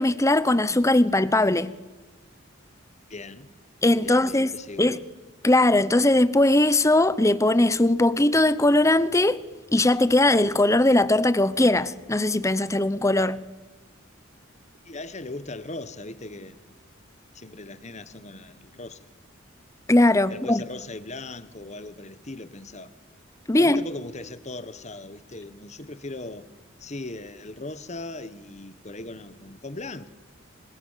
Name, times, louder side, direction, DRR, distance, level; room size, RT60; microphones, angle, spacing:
voice 1, 0.0-1.7 3.8-5.0 5.4-9.4 9.7-13.4 19.9-20.6 23.5-23.8, left 1 dB, 15° left, 0.9 m, -20 dB
voice 2, 3.1-3.5 4.0-4.9 14.8-16.6 17.3-19.1 20.3-23.0 23.6-26.5 26.8-30.1, left 2 dB, 35° left, 1.4 m, -38 dB
28.0 x 25.5 x 7.5 m
head